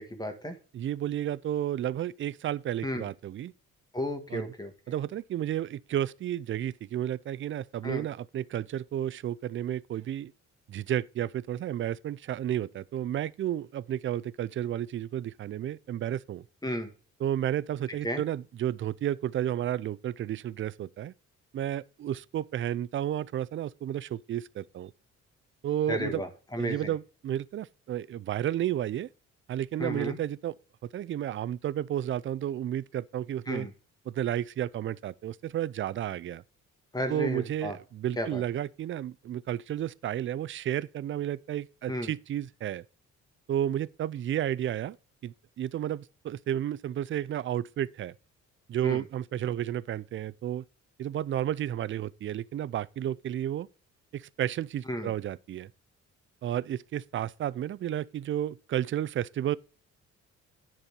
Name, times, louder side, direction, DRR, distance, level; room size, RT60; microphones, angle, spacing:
voice 1, 0.0-0.5 2.8-3.1 3.9-4.7 7.8-8.0 16.6-16.9 18.0-18.2 25.9-26.9 29.8-30.2 33.5-33.7 36.9-37.7 38.2-38.4 41.9-42.1 48.8-49.0 54.9-55.1, equal, 15° left, 1.6 m, -33 dB
voice 2, 0.7-3.5 4.3-4.5 4.9-10.3 10.7-16.4 17.2-21.1 21.5-24.9 25.6-26.2 26.6-29.1 29.5-30.5 30.9-33.7 34.1-36.4 37.1-42.8 43.5-45.0 45.2-48.1 48.7-50.6 51.0-53.7 54.1-55.7 56.4-59.6, right 11 dB, 40° right, 0.4 m, -32 dB
10.0 x 4.5 x 5.1 m
cardioid pair, 120°, 31 cm